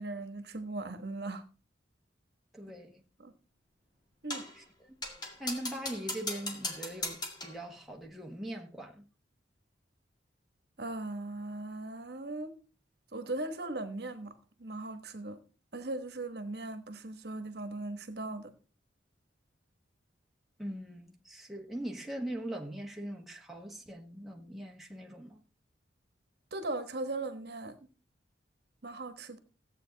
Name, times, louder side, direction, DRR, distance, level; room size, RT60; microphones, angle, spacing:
voice 1, 0.0-1.4 3.2-3.3 4.2-4.4 10.8-12.5 13.1-14.3 14.6-15.4 15.7-18.5 26.5-27.8 28.8-29.4, right 2 dB, 55° right, 1.2 m, -38 dB
voice 2, 2.5-3.0 4.6-5.0 5.4-9.0 20.6-25.4, right 1 dB, ahead, 1.4 m, -41 dB
sound 1, 4.3-4.6 5.0-7.6, left 1 dB, 20° left, 2.0 m, -38 dB
15.0 x 8.2 x 3.9 m
head